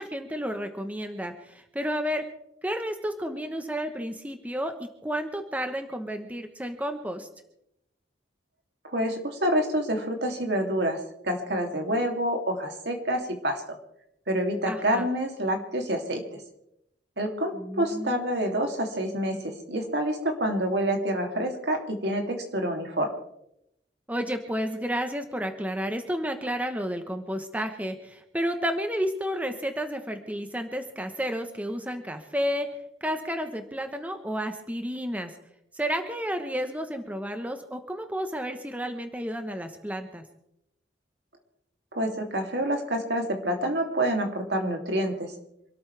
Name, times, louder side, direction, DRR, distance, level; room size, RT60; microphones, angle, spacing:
voice 1, 0.0-2.3 2.6-7.3 14.7-15.1 17.5-18.2 24.1-32.7 33.0-35.3 35.7-40.2, equal, 10° right, 6 dB, 1.1 m, -31 dB
voice 2, 8.8-13.8 14.3-16.4 17.2-23.1 41.9-45.3, right 1 dB, 70° right, 3 dB, 2.9 m, -27 dB
27.0 x 13.0 x 3.4 m, 0.79 s
head